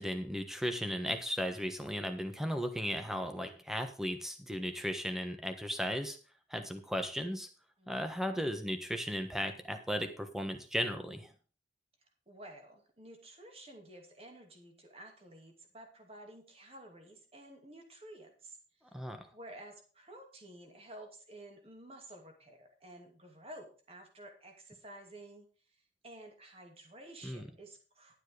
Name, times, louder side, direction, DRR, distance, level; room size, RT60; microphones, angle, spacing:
voice 1, 0.0-6.2 6.5-7.5 7.9-11.3 18.9-19.3 27.2-27.5, equal, ahead, 7 dB, 1.3 m, -36 dB
voice 2, 7.8-8.2 12.3-18.6 19.3-25.4 26.0-28.2, right 1 dB, 30° right, 3 dB, 2.5 m, -52 dB
11.5 x 7.4 x 5.1 m, 0.38 s
head